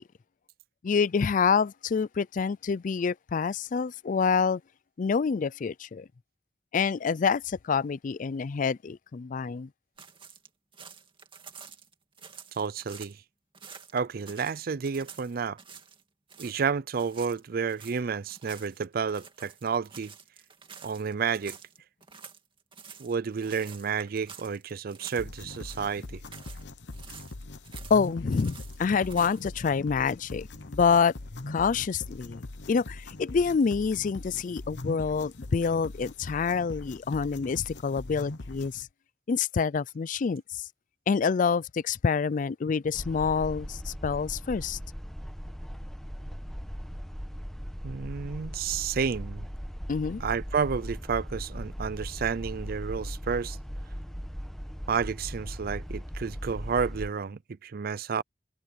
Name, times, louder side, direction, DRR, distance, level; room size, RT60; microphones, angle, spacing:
voice 1, 0.8-4.6 5.0-6.1 6.7-9.7 27.9-31.1 31.5-38.9 39.3-40.7 41.1-44.8 49.9-50.3, left 5 dB, 45° left, 0.4 m, -27 dB
sound 1, 10.0-13.2 13.5-16.0 16.3-16.7 16.9-25.3 25.5-26.6 26.9-29.5, right 6 dB, 30° right, 2.3 m, -49 dB
voice 2, 12.6-13.2 13.9-15.6 16.4-20.1 20.8-21.6 23.0-26.2 47.8-49.5 50.2-53.6 54.9-58.2, right 6 dB, 55° right, 0.5 m, -31 dB
sound 2, 25.2-38.8, left 2 dB, 80° left, 1.0 m, -42 dB
sound 3, 42.9-57.1, equal, ahead, 1.0 m, -38 dB
head